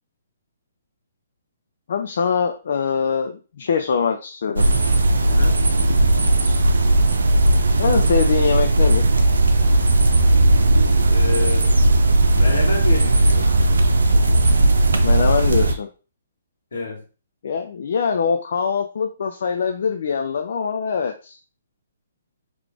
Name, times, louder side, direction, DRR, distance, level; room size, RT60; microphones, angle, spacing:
voice 1, 1.9-4.7 7.8-9.0 15.0-15.9 17.4-21.4, left 6 dB, 65° left, 0.5 m, -23 dB
sound 1, 4.6-15.7, right 2 dB, 90° right, 0.7 m, -16 dB
voice 2, 5.3-5.6 11.1-11.8 12.3-13.7 16.7-17.0, left 2 dB, 80° left, 1.6 m, -29 dB
3.9 x 3.1 x 3.6 m
hypercardioid pair, 145°, 0 cm